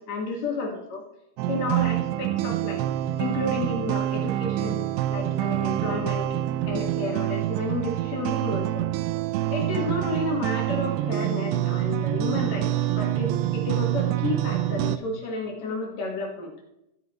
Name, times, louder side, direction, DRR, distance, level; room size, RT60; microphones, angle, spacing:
voice 1, 0.1-0.7 1.5-2.8 3.1-4.8 5.1-6.3 6.7-8.9 9.5-16.5, left 2 dB, 55° left, -1 dB, 2.1 m, -31 dB
sound 1, 1.4-15.0, right 13 dB, 85° right, 2.5 m, -26 dB
14.0 x 9.0 x 3.0 m, 0.84 s
omnidirectional pair, 5.3 m